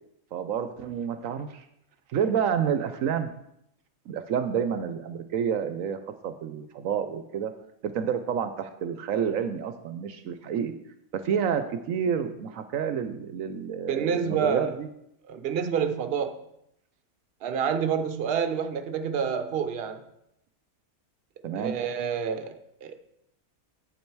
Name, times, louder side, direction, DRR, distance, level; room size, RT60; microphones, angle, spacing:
voice 1, 0.3-1.7 2.1-3.3 4.1-6.0 6.2-7.5 7.8-10.7 11.1-14.9 21.4-21.8, right 7 dB, 75° right, 9 dB, 1.0 m, -29 dB
voice 2, 13.9-14.7 15.3-16.3 17.4-20.0 21.6-23.0, right 7 dB, 50° right, 8 dB, 0.9 m, -28 dB
8.5 x 7.8 x 4.6 m, 0.78 s
omnidirectional pair, 1.4 m